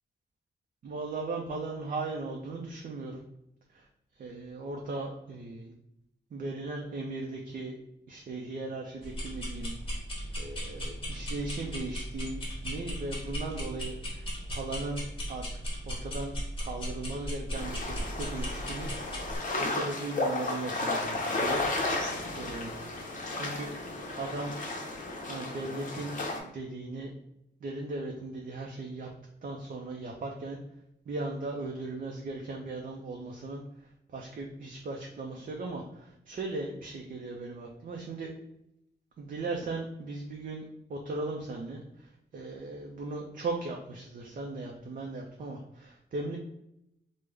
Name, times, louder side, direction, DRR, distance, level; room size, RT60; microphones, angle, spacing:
voice 1, 0.8-3.2 3.7-3.8 4.2-5.7 6.3-7.8 8.1-9.7 10.4-15.0 15.3-15.5 15.9-16.3 16.6-18.9 19.6-21.6 22.3-22.8 23.3-23.7 24.1-24.5 25.3-26.1 26.4-27.1 27.6-29.1 29.4-30.6 31.1-33.6 34.1-38.3 39.2-46.4, right 2 dB, 50° right, 0 dB, 0.4 m, -37 dB
sound 1, 9.0-19.4, equal, 30° left, 1.1 m, -37 dB
sound 2, 17.5-26.4, left 2 dB, 45° left, 0.7 m, -33 dB
3.5 x 2.0 x 3.2 m, 0.80 s
wide cardioid pair, 125°, 19 cm